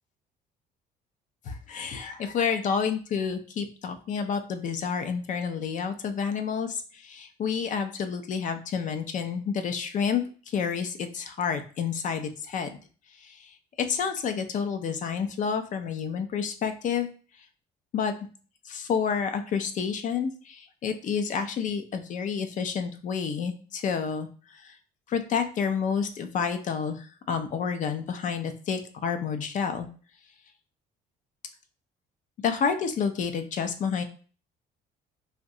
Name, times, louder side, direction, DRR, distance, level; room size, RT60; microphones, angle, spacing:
voice 1, 1.5-12.8 13.2-17.1 17.9-18.1 18.6-24.3 24.5-24.8 25.1-29.9 32.4-34.0, left 6 dB, 50° left, 8 dB, 0.5 m, -29 dB
2.6 x 2.1 x 3.7 m, 0.39 s
cardioid pair, 110°, 17 cm